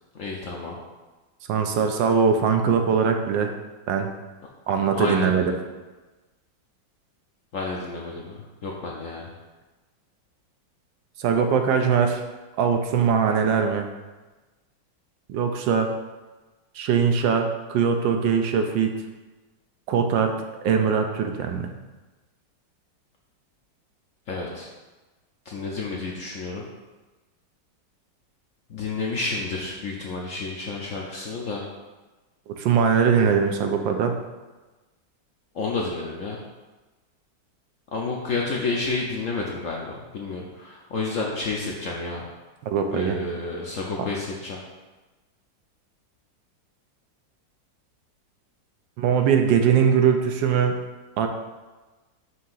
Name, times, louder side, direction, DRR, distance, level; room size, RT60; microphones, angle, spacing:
voice 1, 0.1-0.8 4.9-5.3 7.5-9.3 24.3-24.7 25.5-26.7 28.7-31.7 35.5-36.4 37.9-42.3 42.9-44.6, left 3 dB, 65° left, -2 dB, 0.8 m, -30 dB
voice 2, 1.5-3.5 3.9-4.1 4.7-5.5 11.2-12.2 12.6-13.9 15.3-15.9 16.8-18.9 19.9-20.3 20.6-21.7 32.5-34.1 42.6-43.2 49.0-50.8 51.2-51.3, right 6 dB, 85° right, 5 dB, 1.4 m, -21 dB
6.1 x 2.8 x 5.6 m, 1.2 s
omnidirectional pair, 2.0 m